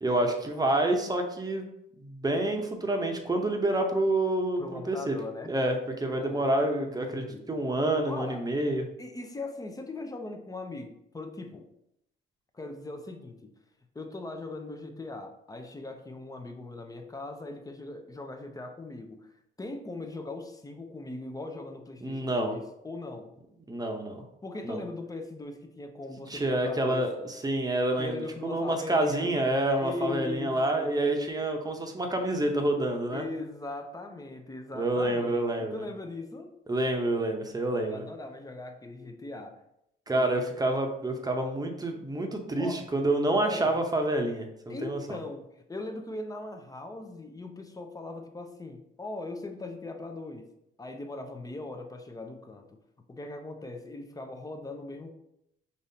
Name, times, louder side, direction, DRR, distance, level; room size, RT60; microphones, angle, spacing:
voice 1, 0.0-1.6 2.0-5.2 5.5-8.8 22.0-22.5 23.7-24.2 24.6-24.8 26.3-33.2 34.7-35.8 36.7-38.0 40.1-45.2, right 1 dB, 20° right, 3 dB, 0.8 m, -28 dB
voice 2, 4.6-5.5 6.2-6.5 6.9-7.5 8.1-8.5 9.0-11.7 12.5-13.5 13.9-19.3 19.6-23.3 24.4-27.1 28.0-29.3 29.8-30.9 33.1-36.5 37.9-39.6 40.1-40.3 42.6-42.8 43.4-43.7 44.7-50.5 50.8-52.8 53.1-55.1, left 2 dB, 20° left, 5 dB, 0.6 m, -39 dB
5.4 x 3.1 x 2.8 m, 0.80 s
cardioid pair, 90°, 20 cm